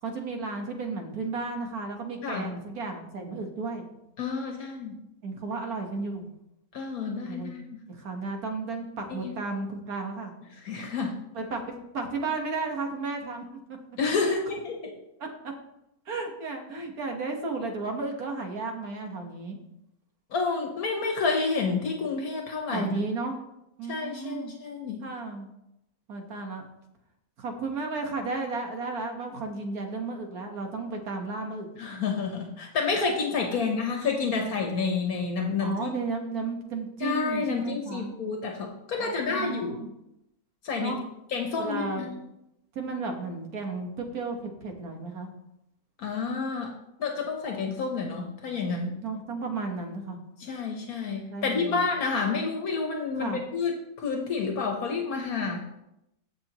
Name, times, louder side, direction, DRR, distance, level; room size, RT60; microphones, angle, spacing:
voice 1, 0.0-3.8 5.2-6.3 7.3-7.5 7.9-10.3 11.4-13.4 14.2-14.4 15.2-15.5 16.1-19.6 22.7-23.4 23.8-24.5 25.0-25.5 26.1-26.6 27.4-31.7 33.5-33.7 35.6-38.1 38.9-39.9 40.8-41.0 41.6-42.2 42.8-45.3 49.0-50.2 51.3-51.9 53.2-53.4, right 3 dB, 85° right, 3 dB, 1.9 m, -33 dB
voice 2, 4.2-4.9 6.7-7.8 9.1-9.3 10.6-11.2 14.0-15.0 20.3-23.0 23.9-25.0 31.8-35.9 37.0-39.8 40.6-40.9 41.3-42.1 46.0-46.7 47.0-49.0 50.4-55.6, left 4 dB, 75° left, 2 dB, 1.6 m, -29 dB
15.5 x 6.1 x 3.0 m, 0.83 s
omnidirectional pair, 1.5 m